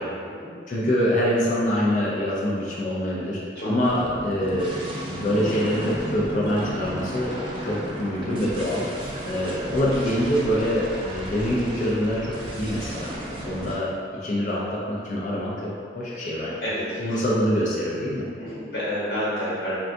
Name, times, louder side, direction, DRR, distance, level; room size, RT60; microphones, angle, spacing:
voice 1, 0.0-0.5 3.5-3.9 9.1-9.3 16.6-17.0 18.4-19.8, equal, 65° left, -10 dB, 1.1 m, -30 dB
voice 2, 0.7-7.3 7.6-8.8 9.2-13.9 14.2-15.5 15.9-16.6 17.0-18.2, equal, 45° left, -5 dB, 0.4 m, -25 dB
sound 1, 3.8-13.7, equal, 30° right, 0.4 m, -34 dB
3.7 x 2.2 x 2.5 m, 2.3 s
head